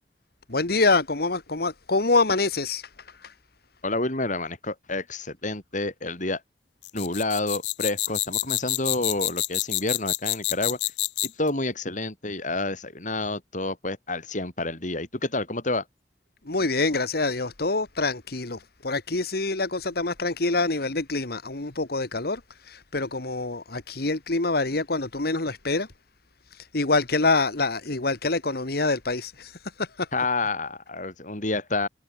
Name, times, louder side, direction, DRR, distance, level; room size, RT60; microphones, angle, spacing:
voice 1, 0.5-3.3 16.5-25.9 26.5-30.1, left 3 dB, 60° left, 1.7 m, -26 dB
voice 2, 3.8-6.4 6.9-10.8 11.2-15.8 30.1-31.9, left 2 dB, 45° left, 5.3 m, -29 dB
sound 1, 6.8-11.5, left 16 dB, 90° left, 0.8 m, -27 dB
head